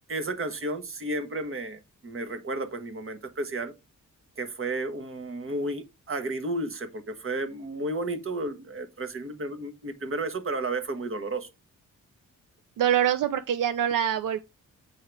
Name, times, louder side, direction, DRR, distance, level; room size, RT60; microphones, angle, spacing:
voice 1, 0.1-3.7 4.4-11.5, right 2 dB, 40° right, 1.3 m, -32 dB
voice 2, 12.8-14.4, right 10 dB, 75° right, 0.5 m, -24 dB
8.4 x 3.7 x 4.6 m
wide cardioid pair, 115°, 33 cm